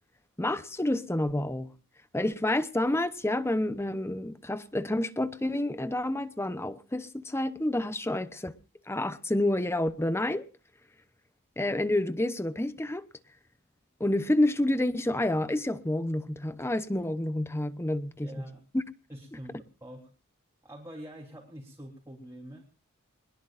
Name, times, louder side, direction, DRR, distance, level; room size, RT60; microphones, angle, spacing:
voice 1, 0.4-1.7 2.1-8.5 8.9-10.5 11.6-13.0 14.0-18.3 18.7-18.8, left 1 dB, 10° left, 0.8 m, -29 dB
voice 2, 18.2-18.6 19.1-20.1 20.6-22.7, equal, 15° right, 3.5 m, -45 dB
22.5 x 21.0 x 2.5 m
head